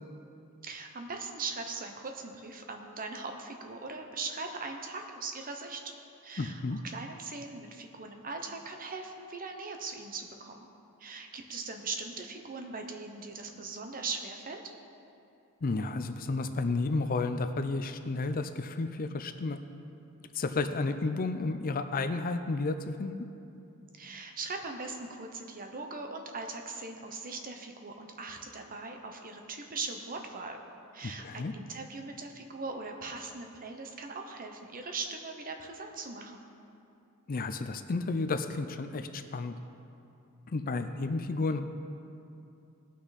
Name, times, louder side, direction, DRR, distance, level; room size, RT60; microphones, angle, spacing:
voice 1, 0.6-5.8 6.2-10.7 11.0-14.7 24.0-30.6 30.9-36.4, right 3 dB, 40° right, 4 dB, 0.9 m, -40 dB
voice 2, 6.4-6.8 15.6-19.6 20.3-23.1 31.0-31.5 37.3-39.6 40.5-41.6, left 3 dB, 40° left, 9 dB, 0.5 m, -32 dB
18.5 x 6.2 x 4.1 m, 2.8 s
head